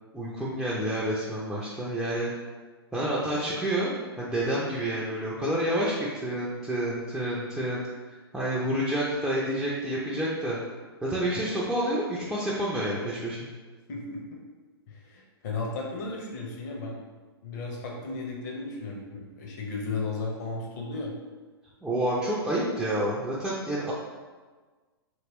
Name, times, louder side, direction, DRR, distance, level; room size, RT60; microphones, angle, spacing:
voice 1, 0.1-2.3 2.9-7.8 8.3-10.6 11.0-13.5 21.8-23.9, right 1 dB, 5° right, -7 dB, 0.4 m, -29 dB
voice 2, 13.9-14.4 14.9-17.0 17.4-21.1, left 3 dB, 45° left, -1 dB, 0.8 m, -35 dB
3.0 x 2.8 x 2.9 m, 1.4 s
figure-of-eight pair, 110°, 13 cm